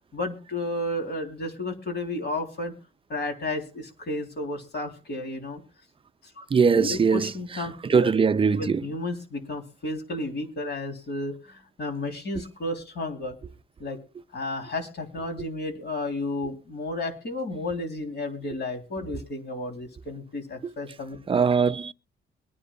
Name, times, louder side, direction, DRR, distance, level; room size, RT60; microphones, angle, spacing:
voice 1, 0.1-2.7 3.1-5.6 6.3-6.4 6.7-8.1 8.6-13.4 13.8-14.0 14.3-21.2, left 2 dB, 55° left, 3.4 m, -32 dB
voice 2, 6.5-7.3 7.8-8.8 20.6-20.7 21.3-21.9, right 5 dB, 25° right, 0.5 m, -21 dB
23.0 x 9.9 x 2.4 m
cardioid pair, 90°, 20 cm